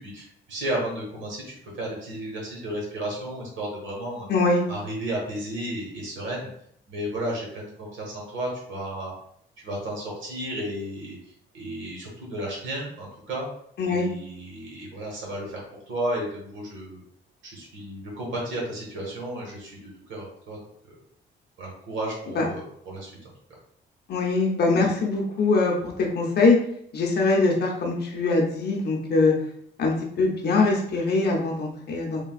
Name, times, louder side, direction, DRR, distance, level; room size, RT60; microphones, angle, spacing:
voice 1, 0.0-4.3 4.7-6.5 6.9-9.1 9.6-11.2 11.5-13.5 13.8-15.6 15.9-17.0 17.4-20.6 21.6-23.1, right 1 dB, 70° right, -3 dB, 1.2 m, -33 dB
voice 2, 4.3-4.6 13.8-14.1 22.3-22.4 24.1-26.6 26.9-29.3 29.8-32.2, left 3 dB, 55° left, 0 dB, 0.7 m, -22 dB
3.3 x 2.2 x 2.3 m, 0.68 s
cardioid pair, 90°, 20 cm